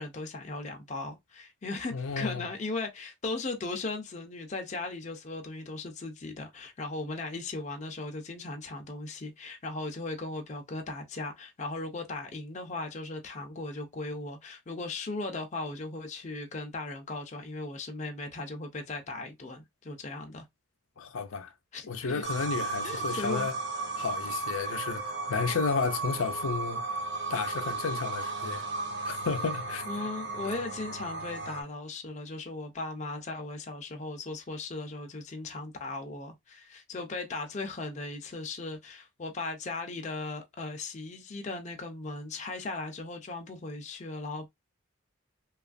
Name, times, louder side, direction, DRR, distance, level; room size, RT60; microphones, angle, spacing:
voice 1, 0.0-20.4 21.7-22.2 22.8-23.5 29.9-44.5, left 3 dB, 35° left, 0.5 m, -37 dB
voice 2, 1.9-2.5 21.0-21.5 21.9-23.5 24.0-26.8 27.3-28.7 29.0-29.9, left 5 dB, 80° left, 0.5 m, -32 dB
sound 1, 22.2-31.6, right 3 dB, 60° right, 1.0 m, -35 dB
3.0 x 2.3 x 2.4 m
head